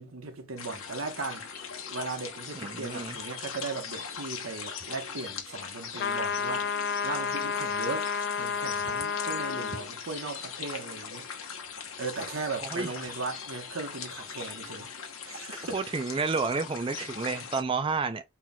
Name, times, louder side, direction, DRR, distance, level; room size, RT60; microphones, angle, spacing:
voice 1, 0.0-1.6 1.9-8.1 8.4-11.3 12.0-16.0, right 3 dB, 90° right, 1.1 m, -38 dB
sound 1, 0.6-17.6, left 6 dB, 90° left, 1.0 m, -40 dB
voice 2, 2.5-3.2 12.7-12.9 15.7-18.2, right 4 dB, 25° right, 0.4 m, -30 dB
sound 2, 6.0-9.8, left 6 dB, 50° left, 0.3 m, -31 dB
5.7 x 3.0 x 2.2 m
head